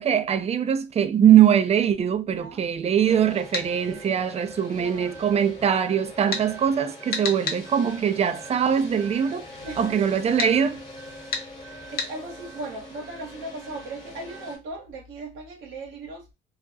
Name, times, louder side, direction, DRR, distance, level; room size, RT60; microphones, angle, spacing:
voice 1, 0.0-9.5 9.8-10.8, right 9 dB, 35° right, 0.3 m, -22 dB
voice 2, 2.3-2.6 4.7-5.2 9.6-10.2 11.9-16.3, right 2 dB, 85° right, 0.8 m, -38 dB
sound 1, 3.1-14.6, equal, 25° left, 1.2 m, -42 dB
sound 2, 3.5-3.7 6.3-6.5 7.1-7.6 10.4-10.5 11.3-11.5 12.0-12.1, left 4 dB, 50° left, 0.7 m, -28 dB
2.3 x 2.0 x 2.6 m
cardioid pair, 90°, 20 cm